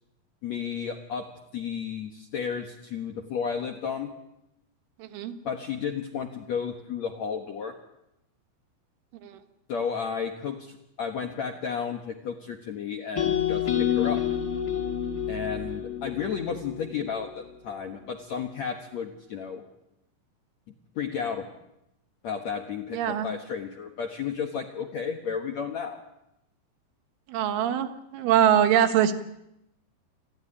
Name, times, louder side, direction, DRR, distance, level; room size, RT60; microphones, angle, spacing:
voice 1, 0.4-4.1 5.4-7.7 9.7-14.2 15.3-19.6 20.9-21.5 22.2-26.0, left 6 dB, 90° left, 4 dB, 1.5 m, -33 dB
voice 2, 5.0-5.3 9.2-9.4 22.9-23.3 27.3-29.1, right 10 dB, 85° right, 7 dB, 3.9 m, -23 dB
sound 1, 13.2-17.3, left 10 dB, 30° left, 2.1 m, -28 dB
28.0 x 13.5 x 9.9 m, 0.87 s
omnidirectional pair, 5.4 m